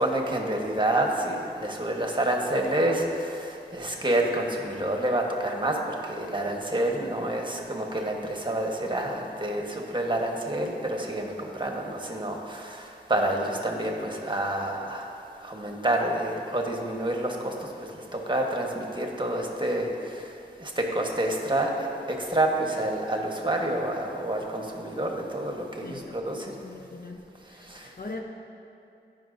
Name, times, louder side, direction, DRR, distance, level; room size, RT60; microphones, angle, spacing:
voice 1, 0.0-15.1 15.4-17.5 17.9-20.3 20.6-26.5 27.6-27.9, right 1 dB, 25° right, 0 dB, 1.2 m, -28 dB
voice 2, 25.8-28.2, left 3 dB, 55° left, 2 dB, 0.8 m, -42 dB
15.0 x 5.7 x 2.6 m, 2.7 s
cardioid pair, 45°, 18 cm